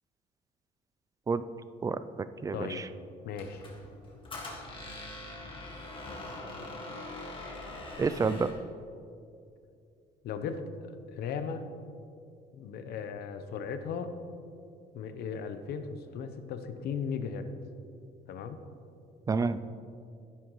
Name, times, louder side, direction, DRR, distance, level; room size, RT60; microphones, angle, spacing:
voice 1, 1.8-2.8 8.0-8.5 19.3-19.6, right 4 dB, 20° right, 13 dB, 0.4 m, -29 dB
voice 2, 2.5-2.9 3.2-3.7 10.2-11.7 12.5-14.1 14.9-17.5 18.3-18.6, left 6 dB, 70° left, 9 dB, 0.8 m, -37 dB
Squeak, 3.4-8.6, left 2 dB, 30° left, 1.8 m, -43 dB
11.5 x 10.0 x 3.1 m, 2.5 s
cardioid pair, 110°, 17 cm